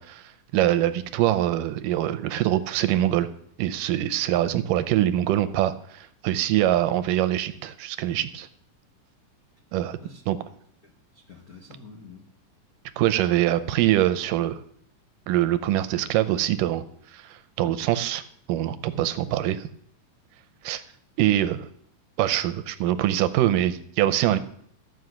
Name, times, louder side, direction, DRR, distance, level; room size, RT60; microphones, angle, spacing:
voice 1, 0.0-3.3 3.6-8.5 9.7-10.0 10.3-10.4 13.0-14.6 15.3-16.8 17.1-18.2 18.5-19.7 20.6-20.8 21.2-21.7 22.2-24.4, right 13 dB, 85° right, 12 dB, 2.3 m, -24 dB
voice 2, 10.8-12.3 24.3-24.4, left 4 dB, 50° left, -1 dB, 1.1 m, -46 dB
14.5 x 5.6 x 7.9 m, 0.65 s
omnidirectional pair, 3.9 m